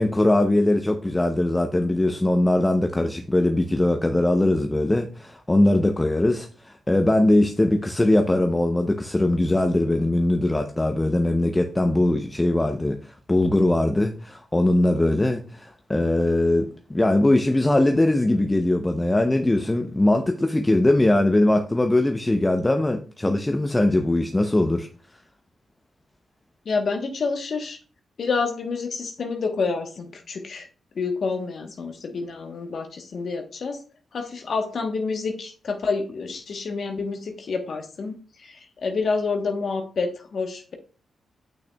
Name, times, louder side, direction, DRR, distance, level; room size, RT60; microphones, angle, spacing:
voice 1, 0.0-24.9, left 1 dB, 20° left, 0.7 m, -21 dB
voice 2, 26.6-27.8 28.2-30.7 30.9-33.8 34.1-40.7, left 4 dB, 65° left, 1.1 m, -28 dB
8.9 x 6.0 x 2.3 m
supercardioid pair, 50°, 0 cm